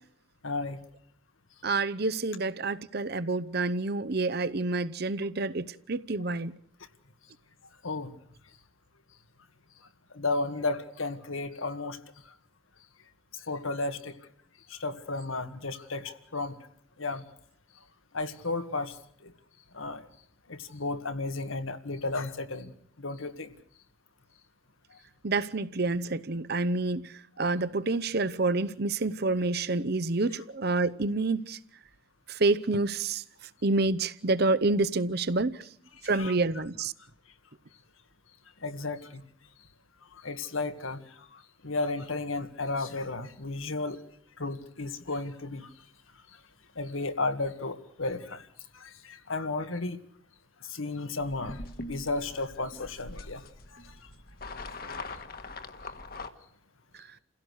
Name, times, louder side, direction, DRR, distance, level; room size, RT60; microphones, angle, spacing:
voice 1, 0.4-0.8 7.8-8.1 10.1-12.0 13.5-14.1 14.7-16.5 17.0-17.2 18.1-18.9 19.2-19.3 19.7-20.0 20.5-22.7 23.0-23.5 36.1-36.3 38.6-39.2 40.2-41.0 41.6-44.0 44.4-45.7 46.8-48.4 48.8-50.0 50.7-51.6 51.9-53.4, left 3 dB, 90° left, 2.0 m, -33 dB
voice 2, 1.6-6.6 25.2-27.1 27.4-31.6 32.4-33.2 33.6-35.6 36.0-36.9, right 3 dB, 50° right, 0.8 m, -28 dB
sound 1, 51.2-56.3, left 2 dB, 50° left, 1.5 m, -42 dB
29.0 x 16.5 x 6.5 m
head